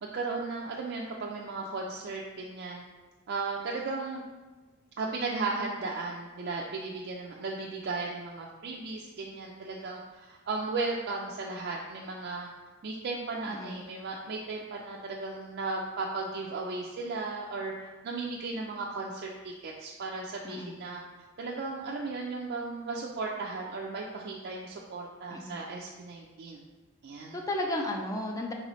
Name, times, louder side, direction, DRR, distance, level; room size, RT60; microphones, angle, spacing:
voice 1, 0.0-2.8 3.3-4.2 5.0-12.5 12.8-21.0 21.4-26.6 27.0-27.4, right 3 dB, 55° right, -2 dB, 0.4 m, -35 dB
voice 2, 13.4-13.8 20.4-20.8 25.3-25.6 27.3-28.5, left 1 dB, 15° left, 1 dB, 0.4 m, -34 dB
4.1 x 3.9 x 3.0 m, 1.3 s
head